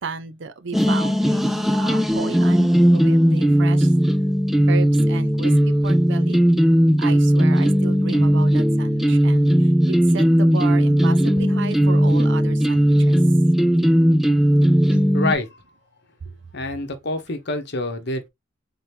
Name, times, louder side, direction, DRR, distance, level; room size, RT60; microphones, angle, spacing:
voice 1, 0.0-3.9 4.7-5.5 5.8-6.4 7.0-13.2 14.9-15.1, right 4 dB, 60° right, 0.5 m, -33 dB
sound 1, 0.7-15.3, equal, ahead, 0.4 m, -17 dB
voice 2, 15.1-15.5 16.5-18.3, left 2 dB, 55° left, 0.9 m, -26 dB
3.7 x 2.8 x 3.4 m
head